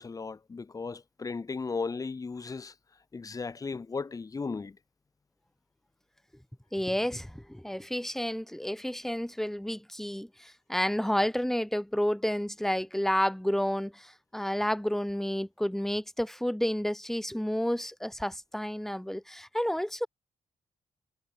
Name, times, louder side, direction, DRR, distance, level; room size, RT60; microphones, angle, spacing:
voice 1, 0.0-2.7 3.1-4.8, left 4 dB, 25° left, 0.7 m, -36 dB
voice 2, 6.7-20.1, equal, ahead, 1.7 m, -30 dB
cardioid pair, 105°, 14 cm